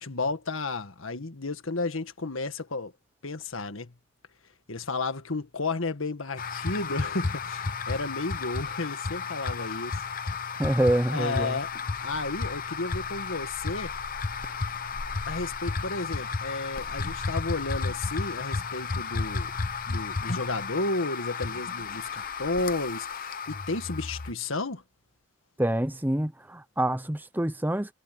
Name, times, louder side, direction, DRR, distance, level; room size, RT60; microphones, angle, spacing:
voice 1, 0.0-2.9 3.2-3.9 4.7-10.0 11.1-11.7 12.0-13.9 15.3-19.5 19.9-24.8, left 3 dB, 80° left, 1.7 m, -32 dB
sound 1, 6.4-24.3, left 4 dB, 40° left, 0.9 m, -33 dB
voice 2, 10.6-11.6 25.6-27.9, right 1 dB, 10° right, 0.6 m, -26 dB
head